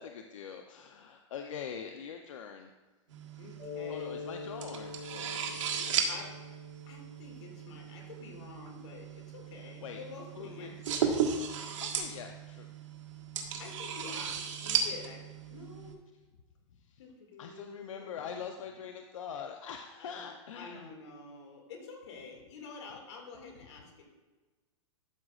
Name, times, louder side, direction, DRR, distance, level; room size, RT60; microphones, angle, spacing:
voice 1, 0.0-2.7 3.9-5.3 5.5-6.1 9.6-10.0 10.4-10.7 11.8-12.7 16.8-17.0 17.4-20.9, left 7 dB, 90° left, 4 dB, 0.6 m, -44 dB
sound 1, 3.1-15.9, right 7 dB, 80° right, 1.4 m, -36 dB
voice 2, 3.3-4.1 5.4-5.5 6.1-6.3 6.9-11.2 13.6-16.0 17.0-18.3 20.0-20.3 20.5-24.0, left 4 dB, 60° left, 1 dB, 2.2 m, -48 dB
Mallet percussion, 3.6-8.0, left 6 dB, 15° left, 2.5 m, -44 dB
12.5 x 6.1 x 2.4 m, 1.3 s
supercardioid pair, 165°, 16 cm